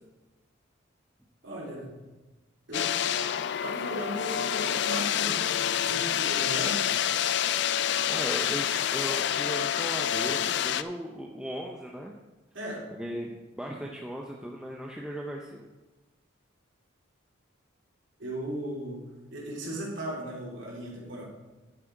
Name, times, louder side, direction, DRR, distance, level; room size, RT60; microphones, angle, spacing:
voice 1, 1.4-1.9 2.7-2.9 3.6-5.4 5.7-6.8 12.5-12.8 13.8-13.9 18.2-19.0 19.3-21.2, right 1 dB, 65° right, -5 dB, 3.2 m, -36 dB
sound 1, 2.7-10.8, left 10 dB, 60° left, 0.4 m, -28 dB
voice 2, 8.1-12.1 13.0-13.3 13.6-15.7, equal, 5° right, -1 dB, 0.6 m, -37 dB
10.5 x 7.5 x 4.6 m, 1.1 s
head